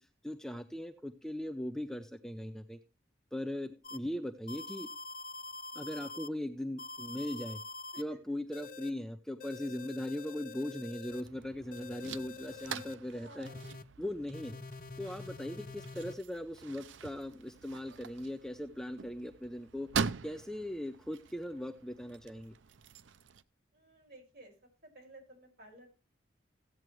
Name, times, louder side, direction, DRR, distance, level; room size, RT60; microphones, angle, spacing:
voice 1, 0.2-2.8 3.3-4.9 5.7-7.6 8.0-13.5 14.0-14.5 15.0-19.9 20.2-22.5, left 1 dB, 5° left, 7 dB, 0.5 m, -39 dB
sound 1, 3.8-4.0 4.5-6.3 6.8-8.0 8.5-8.9 9.4-11.2 11.7-13.0 13.4-13.8 14.3-16.1, left 3 dB, 45° left, 0.6 m, -46 dB
sound 2, 11.1-23.4, right 6 dB, 80° right, 0.5 m, -43 dB
voice 2, 13.1-13.7 23.7-24.5 24.8-25.9, right 1 dB, 55° right, 1 dB, 5.4 m, -55 dB
15.5 x 8.9 x 3.1 m, 0.31 s
head